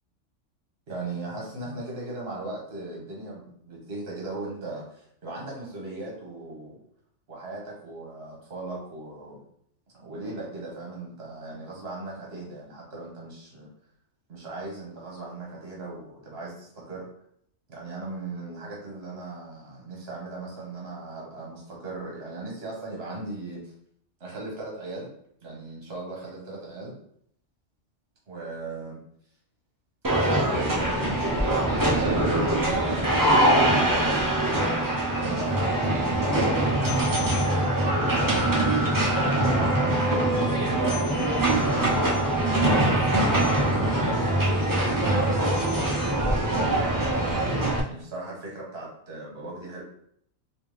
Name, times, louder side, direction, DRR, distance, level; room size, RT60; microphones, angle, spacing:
voice 1, 0.9-6.8 7.3-9.4 9.9-13.7 14.3-17.1 17.7-23.7 24.2-25.1 25.4-26.9 28.3-29.0 30.1-31.4 31.9-34.4 35.2-38.6 39.2-45.7 46.4-49.8, right 2 dB, 55° right, -3 dB, 1.3 m, -38 dB
sound 1, 30.0-47.8, right 1 dB, 35° right, 0.3 m, -23 dB
3.4 x 2.8 x 3.1 m, 0.69 s
omnidirectional pair, 1.3 m